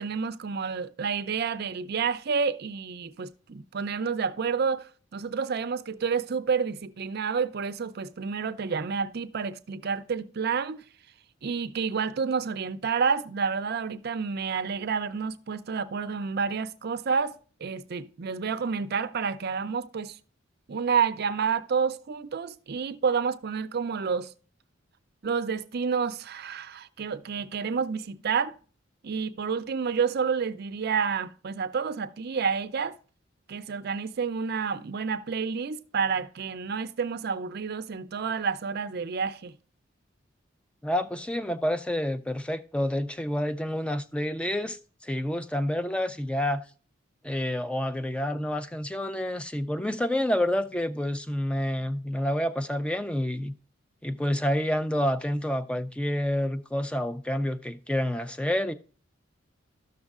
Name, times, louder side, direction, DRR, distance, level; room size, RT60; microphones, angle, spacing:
voice 1, 0.0-10.8 11.4-20.2 20.7-24.3 25.2-28.6 29.0-33.0 33.5-39.5, right 5 dB, 55° right, 0.5 m, -29 dB
voice 2, 40.8-46.6 47.2-53.5 54.0-58.7, left 1 dB, 5° left, 0.4 m, -28 dB
13.0 x 6.3 x 2.4 m
head